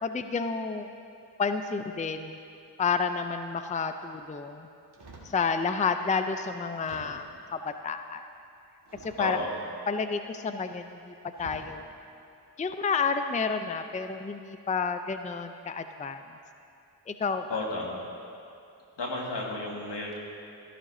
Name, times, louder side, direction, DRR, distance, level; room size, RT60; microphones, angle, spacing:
voice 1, 0.0-0.9 1.4-2.4 2.8-4.7 5.2-8.2 9.0-9.4 9.9-11.8 12.6-16.2 17.1-17.6, left 5 dB, 20° left, 8 dB, 0.4 m, -30 dB
sound 1, 4.9-5.4 6.1-6.2 6.8-7.4 8.8-9.6 10.7-10.9 11.3-11.8 12.4-12.7, right 2 dB, 70° right, 2.0 m, -48 dB
voice 2, 9.2-9.5 17.5-18.0 19.0-20.2, left 2 dB, 80° left, -2 dB, 1.8 m, -33 dB
14.0 x 12.0 x 2.7 m, 2.6 s
cardioid pair, 45°, 42 cm